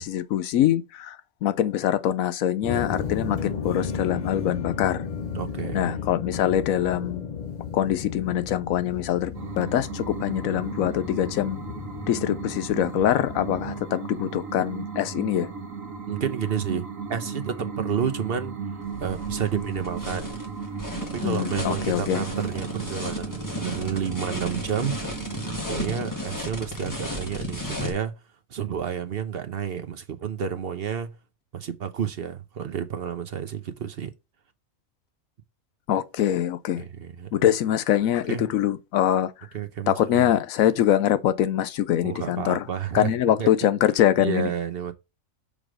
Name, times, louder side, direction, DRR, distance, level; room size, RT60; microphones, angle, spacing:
voice 1, 0.0-5.1 5.7-7.3 7.7-11.6 12.1-15.5 21.2-22.2 35.9-36.8 37.3-39.5 39.9-42.7 42.9-44.5, left 11 dB, 85° left, 1.0 m, -24 dB
sound 1, 2.6-13.8, left 6 dB, 50° left, 0.5 m, -34 dB
voice 2, 5.3-5.9 16.1-18.6 19.0-20.3 21.0-24.9 25.6-28.1 28.5-31.1 31.5-34.1 36.8-37.3 38.3-38.4 39.5-40.3 42.0-43.5 44.2-44.9, right 8 dB, 55° right, 0.8 m, -30 dB
sound 2, 9.3-25.6, right 5 dB, 75° right, 1.4 m, -35 dB
sound 3, 18.8-27.9, left 1 dB, 15° left, 1.5 m, -34 dB
6.2 x 3.4 x 4.9 m
omnidirectional pair, 1.4 m